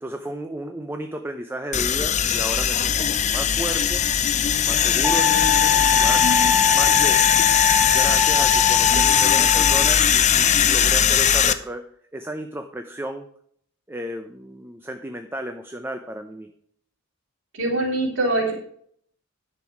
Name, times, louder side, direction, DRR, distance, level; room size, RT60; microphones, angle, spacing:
voice 1, 0.0-4.0 4.5-6.3 6.7-7.2 7.9-11.8 12.1-13.3 13.9-16.5, right 1 dB, 10° right, 6 dB, 0.6 m, -33 dB
sound 1, 1.7-11.5, left 9 dB, 35° left, 0.5 m, -19 dB
Wind instrument woodwind instrument, 5.0-9.9, left 6 dB, 5° left, 1.4 m, -22 dB
voice 2, 17.5-18.5, right 2 dB, 60° right, -1 dB, 3.2 m, -23 dB
10.5 x 6.3 x 4.8 m, 0.64 s
head